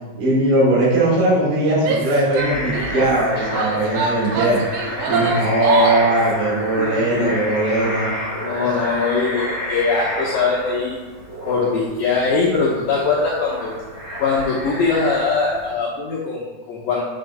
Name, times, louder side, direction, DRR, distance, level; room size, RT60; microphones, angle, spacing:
voice 1, 0.2-4.6 5.1-8.1, right 1 dB, 75° right, -7 dB, 4.8 m, -19 dB
Female speech woman speaking / Yell, 1.8-3.0 3.5-6.2, right 4 dB, 90° right, 3.3 m, -24 dB
sound 1, 2.3-15.7, equal, 40° right, 2.4 m, -30 dB
voice 2, 6.8-7.4 8.4-11.0 11.4-13.7 14.2-17.1, left 4 dB, 75° left, -6 dB, 2.1 m, -21 dB
8.9 x 7.9 x 2.5 m, 1.2 s
omnidirectional pair, 5.4 m